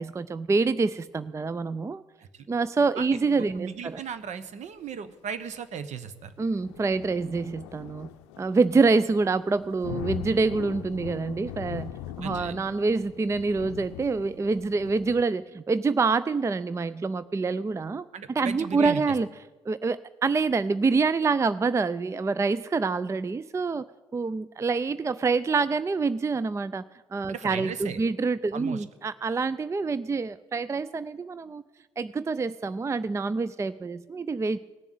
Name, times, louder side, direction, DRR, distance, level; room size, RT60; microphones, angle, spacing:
voice 1, 0.0-2.0 2.5-4.0 6.4-8.1 8.4-11.9 12.2-18.1 18.4-19.3 19.7-23.9 24.1-26.8 27.1-31.6 32.0-34.6, right 4 dB, 20° right, 16 dB, 0.4 m, -26 dB
voice 2, 3.4-6.3 12.2-12.6 18.1-19.1 27.3-28.0 28.5-28.8, right 7 dB, 55° right, 13 dB, 1.0 m, -36 dB
sound 1, 6.5-15.2, left 12 dB, 80° left, 0.5 m, -41 dB
18.0 x 7.1 x 8.5 m, 1.3 s
hypercardioid pair, 55°, 14 cm